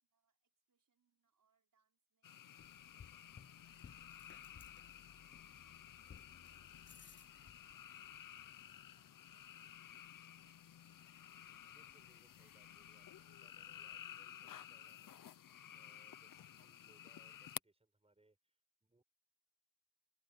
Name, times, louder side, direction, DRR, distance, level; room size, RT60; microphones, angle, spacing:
voice 1, 0.0-4.2 4.7-5.5 5.8-6.6 7.0-8.0 8.7-9.9 10.3-11.4, right 6 dB, 75° right, 4.5 m, -86 dB
sound 1, 2.2-17.6, left 10 dB, 75° left, 0.7 m, -54 dB
sound 2, 2.6-14.1, left 7 dB, 35° left, 0.6 m, -64 dB
voice 2, 11.7-19.0, right 2 dB, 20° right, 5.6 m, -73 dB
wide cardioid pair, 145°, 33 cm